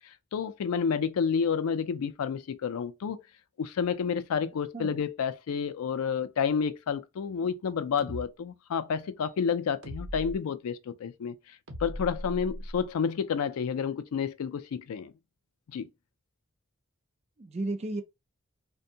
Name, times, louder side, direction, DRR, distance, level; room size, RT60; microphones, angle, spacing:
voice 1, 0.3-3.2 3.6-11.4 11.8-15.1 15.7-15.9, left 6 dB, 80° left, 0.4 m, -30 dB
voice 2, 4.5-5.0 17.4-18.0, right 2 dB, 30° right, 0.3 m, -34 dB
sound 1, 8.0-8.2 9.8-10.4 11.7-12.8, equal, 80° right, 0.8 m, -38 dB
2.6 x 2.2 x 2.7 m
head